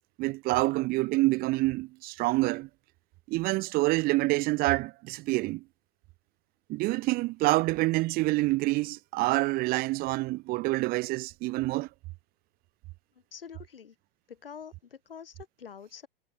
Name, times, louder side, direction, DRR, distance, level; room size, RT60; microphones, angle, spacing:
voice 1, 0.2-2.7 3.3-5.6 6.7-11.9, right 21 dB, 30° right, 1.2 m, -27 dB
voice 2, 13.3-13.9 14.3-16.1, left 7 dB, 70° left, 4.4 m, -46 dB
figure-of-eight pair, 105°, 29 cm